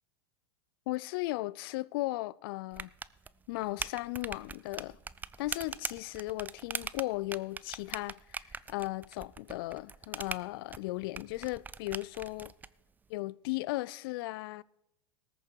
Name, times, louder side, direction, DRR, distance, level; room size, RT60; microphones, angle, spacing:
voice 1, 0.9-2.9 3.5-5.0 5.4-8.4 8.7-12.5 13.1-14.6, left 20 dB, 60° left, 0.4 m, -36 dB
sound 1, 2.7-12.7, right 5 dB, 10° right, 0.4 m, -42 dB
19.0 x 6.9 x 4.5 m
hypercardioid pair, 105°, 14 cm